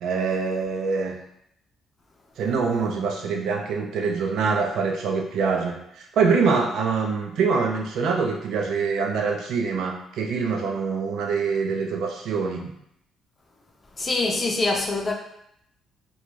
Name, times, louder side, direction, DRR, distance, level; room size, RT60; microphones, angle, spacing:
voice 1, 0.0-1.2 2.4-12.7, right 5 dB, 75° right, 1 dB, 0.4 m, -24 dB
voice 2, 14.0-15.1, left 2 dB, 25° left, 2 dB, 0.4 m, -24 dB
2.5 x 2.3 x 3.0 m, 0.76 s
cardioid pair, 120°, 0 cm